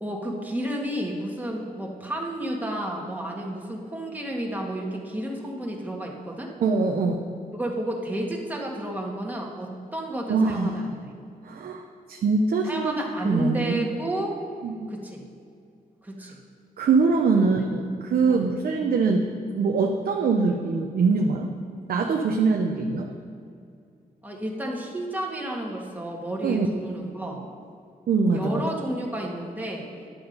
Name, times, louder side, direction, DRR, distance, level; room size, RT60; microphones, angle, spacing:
voice 1, 0.0-6.5 7.5-11.0 12.6-14.4 14.9-15.2 16.0-16.4 17.5-17.7 18.3-18.5 24.2-27.4 28.3-29.9, right 1 dB, 10° right, -1 dB, 1.8 m, -31 dB
voice 2, 6.6-7.2 10.3-10.8 11.4-11.8 12.1-12.9 13.3-13.8 14.6-14.9 16.2-16.3 16.8-19.3 19.5-21.5 21.9-23.1 26.4-26.7 28.1-28.5, right 4 dB, 75° right, 2 dB, 0.7 m, -23 dB
11.0 x 7.0 x 5.3 m, 2.4 s
cardioid pair, 80°, 15 cm